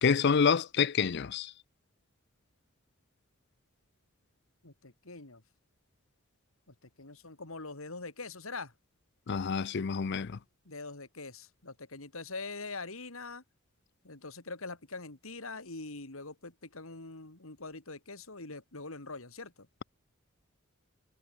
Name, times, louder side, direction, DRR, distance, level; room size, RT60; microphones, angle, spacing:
voice 1, 0.0-1.5 9.3-10.4, left 6 dB, 55° left, 0.5 m, -27 dB
voice 2, 4.6-5.4 6.7-8.7 10.6-13.4 14.0-19.7, left 3 dB, 80° left, 3.3 m, -43 dB
head